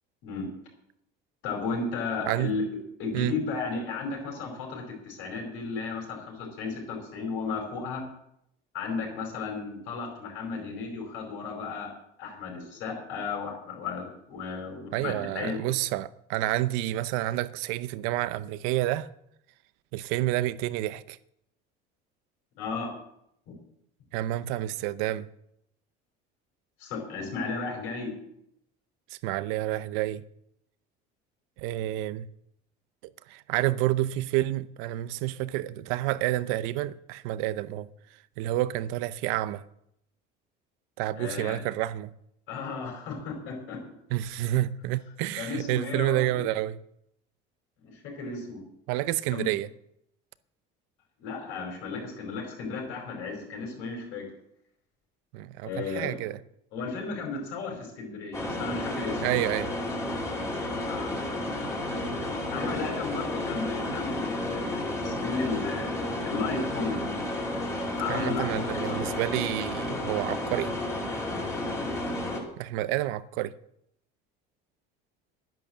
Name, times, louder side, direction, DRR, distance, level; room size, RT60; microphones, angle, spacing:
voice 1, 1.4-2.6 3.0-8.0 8.7-11.9 12.2-15.6 22.6-22.9 26.8-28.1 41.2-41.6 42.5-43.8 45.4-46.4 47.8-48.6 49.3-49.5 51.2-54.3 55.6-56.2 56.7-59.2 60.9-61.1 62.5-66.0 66.2-67.1 68.0-69.0, left 4 dB, 70° left, 4.9 m, -34 dB
voice 2, 14.9-19.1 19.9-21.2 24.1-25.3 29.1-30.2 31.6-32.3 33.3-37.9 38.4-39.6 41.0-42.1 44.1-46.8 48.9-49.7 55.3-56.4 59.2-59.7 68.1-70.7 72.6-73.5, right 15 dB, 90° right, 0.7 m, -29 dB
sound 1, 58.3-72.4, left 1 dB, 15° left, 2.2 m, -32 dB
11.0 x 10.5 x 7.4 m
cardioid pair, 170°, 21 cm